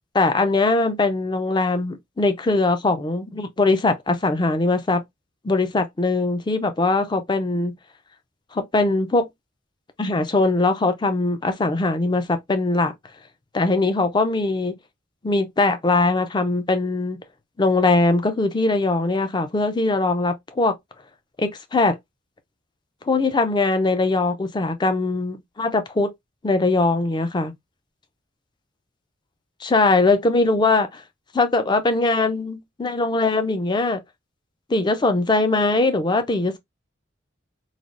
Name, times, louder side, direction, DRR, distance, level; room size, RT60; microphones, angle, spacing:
voice 1, 0.1-5.0 5.4-7.8 8.5-9.2 10.0-12.9 13.5-14.8 15.2-17.2 17.6-20.8 21.4-22.0 23.1-26.1 26.4-27.5 29.6-31.0 31.3-34.0 34.7-36.6, left 3 dB, 20° left, 0.4 m, -21 dB
3.2 x 2.3 x 2.5 m
head